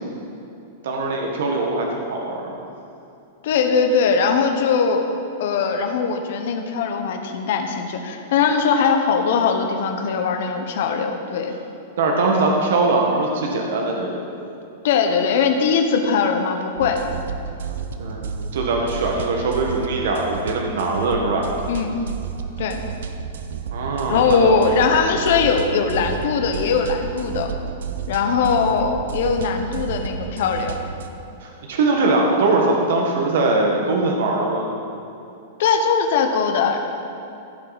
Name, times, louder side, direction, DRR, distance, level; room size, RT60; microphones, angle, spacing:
voice 1, 0.8-2.5 12.0-14.2 18.0-18.2 18.5-21.5 23.7-25.0 31.4-34.7, right 3 dB, 65° right, 0 dB, 1.6 m, -21 dB
voice 2, 3.4-5.0 5.4-11.5 14.8-17.0 21.7-22.0 22.6-22.8 24.1-27.5 28.1-30.8 35.6-36.8, left 5 dB, 55° left, 4 dB, 1.1 m, -20 dB
sound 1, 16.8-31.1, right 6 dB, 85° right, 0.8 m, -31 dB
15.5 x 7.6 x 4.2 m, 2.7 s
supercardioid pair, 175°, 0 cm